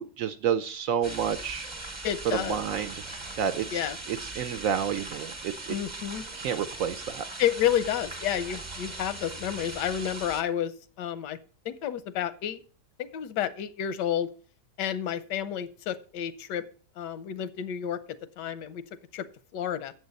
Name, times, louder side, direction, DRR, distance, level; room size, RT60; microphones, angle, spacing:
voice 1, 0.0-1.7 2.3-2.9 3.4-3.7 4.4-5.7 6.3-7.2, right 8 dB, 70° right, 9 dB, 0.8 m, -29 dB
sound 1, 1.0-10.4, right 2 dB, 20° right, 0.9 m, -40 dB
voice 2, 2.0-2.6 3.7-4.0 5.7-6.2 7.4-11.4 11.6-12.6 13.0-14.3 14.8-16.6 17.0-18.0 18.4-18.8 19.1-19.3 19.5-19.9, left 10 dB, 90° left, 14 dB, 1.3 m, -30 dB
8.0 x 7.6 x 5.2 m, 0.40 s
omnidirectional pair, 1.8 m